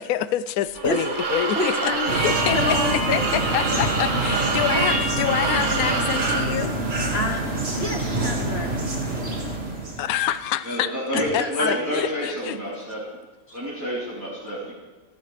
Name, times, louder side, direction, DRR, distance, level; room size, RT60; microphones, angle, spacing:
voice 1, 0.0-1.6 1.8-2.6 3.1-6.8 10.0-12.6, left 12 dB, 80° left, 14 dB, 1.1 m, -27 dB
sound 1, 0.7-6.5, right 3 dB, 85° right, 2.2 m, -27 dB
voice 2, 1.5-2.2 2.5-3.4 3.7-3.9 7.1-7.4 7.7-9.4 11.1-12.3 13.5-13.6, left 2 dB, 45° left, 3 dB, 1.5 m, -28 dB
sound 2, 2.1-10.4, right 2 dB, 45° right, 2.4 m, -26 dB
voice 3, 10.6-13.1 13.5-14.7, equal, 10° right, -8 dB, 3.8 m, -29 dB
29.0 x 11.5 x 3.4 m, 1.2 s
omnidirectional pair, 1.5 m